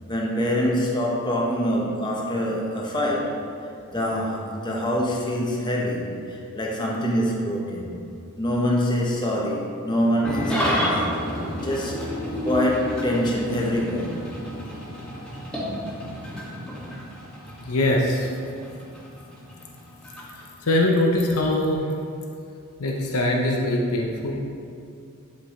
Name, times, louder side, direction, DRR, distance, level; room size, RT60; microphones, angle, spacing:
voice 1, 0.0-3.4 3.9-7.9 8.4-11.0 11.5-12.1 12.4-14.2, equal, 20° left, -3 dB, 1.0 m, -25 dB
Engine starting / Idling, 10.2-20.8, equal, 5° left, 1.6 m, -31 dB
voice 2, 17.6-18.3 20.3-21.9 22.8-24.4, left 1 dB, 80° left, 0 dB, 0.8 m, -22 dB
11.5 x 5.3 x 3.1 m, 2.5 s
head